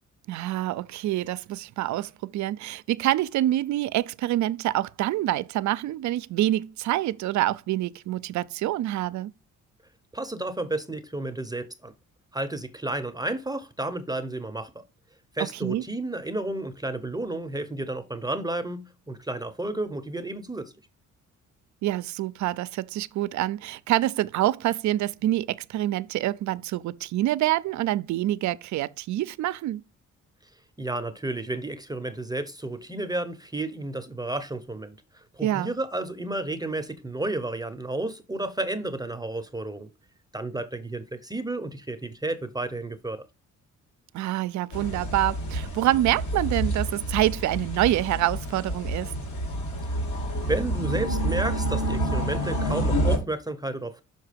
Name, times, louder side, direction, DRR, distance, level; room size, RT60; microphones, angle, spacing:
voice 1, 0.3-9.3 15.4-15.8 21.8-29.8 35.4-35.7 44.1-49.1, right 14 dB, 70° right, 0.5 m, -26 dB
voice 2, 10.1-11.9 12.3-14.8 15.3-20.7 30.8-39.9 40.3-43.3 49.9-50.0 50.5-54.0, right 2 dB, 15° right, 0.7 m, -32 dB
sound 1, 44.7-53.2, right 1 dB, 70° left, 2.3 m, -28 dB
6.4 x 4.5 x 5.1 m
cardioid pair, 90°, 30 cm